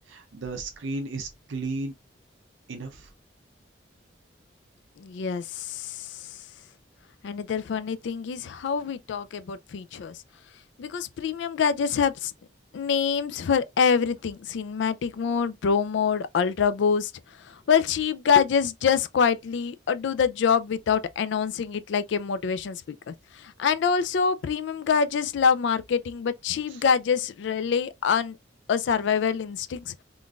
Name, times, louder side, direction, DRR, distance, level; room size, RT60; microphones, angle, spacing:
voice 1, 0.1-1.9 2.7-3.1 26.7-26.8, right 3 dB, 85° right, 0.6 m, -34 dB
voice 2, 5.0-6.2 7.2-10.2 10.8-12.3 12.7-17.1 17.5-28.4 28.7-29.9, left 6 dB, 70° left, 0.3 m, -25 dB
3.7 x 2.5 x 2.3 m
head